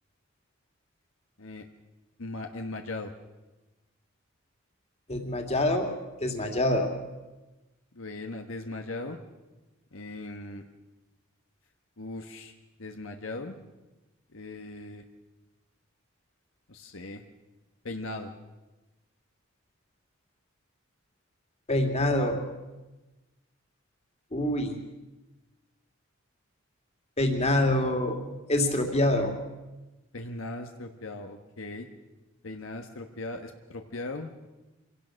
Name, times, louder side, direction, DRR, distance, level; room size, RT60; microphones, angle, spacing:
voice 1, 2.2-3.1 7.9-9.2 9.9-10.6 12.0-12.5 12.8-13.6 14.3-15.0 16.7-17.2 17.8-18.3 30.1-31.9 32.4-34.5, left 2 dB, 75° left, 5 dB, 1.4 m, -38 dB
voice 2, 5.1-5.9 6.2-6.9 21.7-22.4 24.3-24.7 27.2-28.2 28.5-29.3, left 1 dB, 30° left, 4 dB, 2.7 m, -25 dB
26.0 x 17.0 x 6.5 m, 1.1 s
head